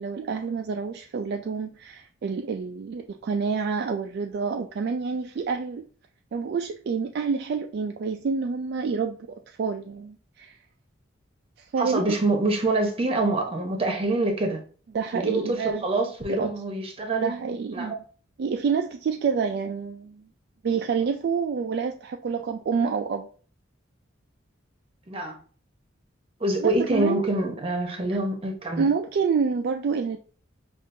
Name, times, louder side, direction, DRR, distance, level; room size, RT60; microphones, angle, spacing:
voice 1, 0.0-5.8 6.3-10.6 11.6-12.1 14.9-15.9 16.3-16.5 17.2-17.9 18.4-20.3 20.6-23.3 26.6-27.3 28.8-30.2, right 5 dB, 55° right, 0.3 m, -28 dB
voice 2, 11.8-14.6 15.1-17.4 17.7-18.0 25.1-25.4 26.4-28.9, right 2 dB, 30° right, 0.8 m, -26 dB
5.1 x 2.5 x 2.6 m
head